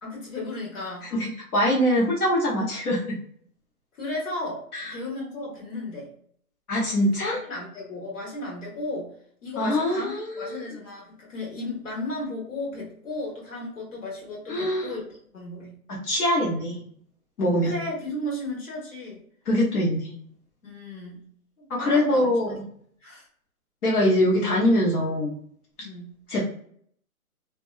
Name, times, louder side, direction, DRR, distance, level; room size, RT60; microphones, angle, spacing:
voice 1, 0.0-1.1 3.9-6.1 7.2-9.1 9.4-15.0 15.3-15.8 17.6-19.2 20.6-21.2 21.6-22.3 23.0-23.3 25.8-26.1, left 2 dB, 55° left, -3 dB, 1.4 m, -34 dB
voice 2, 1.1-3.1 4.7-4.9 6.7-7.4 9.6-10.6 14.5-14.9 15.9-16.8 17.4-17.8 19.5-20.1 21.7-22.6 23.8-25.3 26.3-26.5, left 1 dB, 85° left, -5 dB, 1.2 m, -23 dB
2.6 x 2.2 x 2.4 m, 0.62 s
hypercardioid pair, 175°, 44 cm